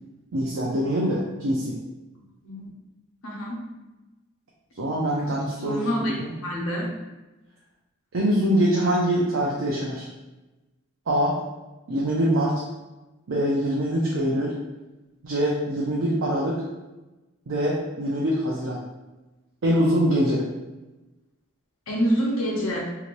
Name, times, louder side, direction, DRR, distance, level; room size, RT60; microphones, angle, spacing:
voice 1, 0.3-1.8 4.8-6.3 8.1-10.1 11.1-11.4 11.9-12.6 13.3-14.5 15.2-16.6 17.5-18.8 19.6-20.5, equal, 65° right, -4 dB, 0.5 m, -24 dB
voice 2, 3.2-3.6 5.6-6.1 6.4-6.9 21.9-22.8, equal, 80° left, -4 dB, 0.9 m, -26 dB
3.1 x 2.8 x 2.5 m, 1.1 s
head